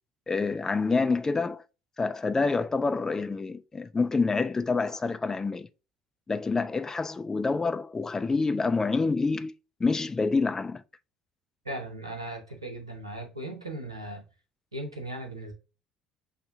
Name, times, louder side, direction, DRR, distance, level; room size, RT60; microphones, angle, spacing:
voice 1, 0.3-1.6 2.0-5.7 6.3-9.5 9.8-10.8, left 4 dB, 20° left, 0.3 m, -27 dB
voice 2, 11.6-14.2 14.7-15.5, right 1 dB, 85° right, 0.7 m, -37 dB
6.5 x 2.6 x 2.6 m
figure-of-eight pair, 55°, 3 cm